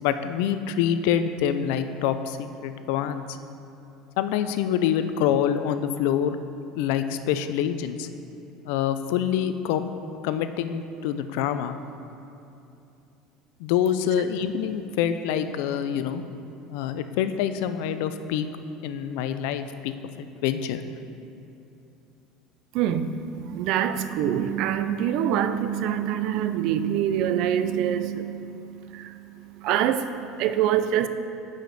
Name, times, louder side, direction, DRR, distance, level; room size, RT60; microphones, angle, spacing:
voice 1, 0.0-3.3 4.2-6.4 6.8-8.1 8.7-9.9 10.2-11.8 13.6-16.2 16.7-18.5 18.8-20.8, left 9 dB, 75° left, 10 dB, 0.4 m, -26 dB
voice 2, 22.7-31.1, right 10 dB, 60° right, 11 dB, 0.4 m, -25 dB
8.9 x 5.0 x 4.0 m, 2.7 s
cardioid pair, 130°, 0 cm